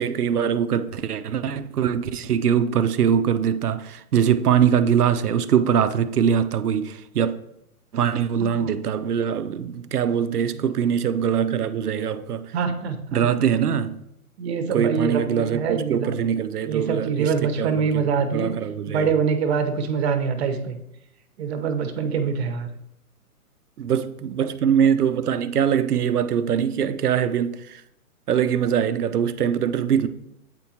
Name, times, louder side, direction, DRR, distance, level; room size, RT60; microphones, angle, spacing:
voice 1, 0.0-7.3 7.9-12.5 13.1-14.0 14.7-18.0 18.3-19.1 23.8-27.8 28.3-30.1, right 8 dB, 80° right, 0.7 m, -22 dB
voice 2, 8.4-8.7 10.5-10.6 12.5-13.3 14.4-16.2 16.7-18.5 18.9-20.8 21.4-22.7, right 6 dB, 45° right, 0.9 m, -24 dB
8.3 x 4.4 x 2.8 m
hypercardioid pair, 135°, 45 cm